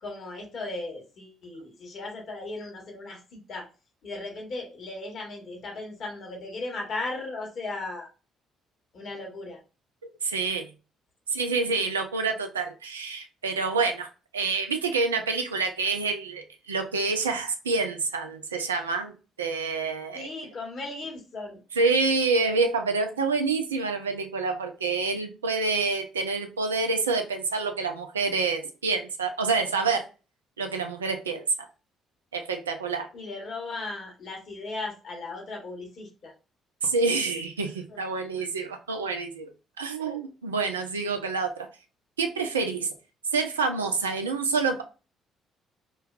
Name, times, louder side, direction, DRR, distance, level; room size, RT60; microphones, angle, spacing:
voice 1, 0.0-3.7 4.0-8.1 8.9-9.6 20.1-21.6 33.1-36.3 37.9-38.0 38.3-38.4, left 2 dB, 50° left, 1 dB, 1.0 m, -37 dB
voice 2, 10.2-10.7 11.3-14.1 14.3-20.3 21.8-30.0 30.6-31.4 32.3-33.1 36.8-39.5 39.8-41.7 42.2-42.9 43.3-44.8, right 4 dB, 85° right, 5 dB, 0.3 m, -27 dB
3.1 x 2.2 x 2.3 m, 0.33 s
figure-of-eight pair, 45°, 0 cm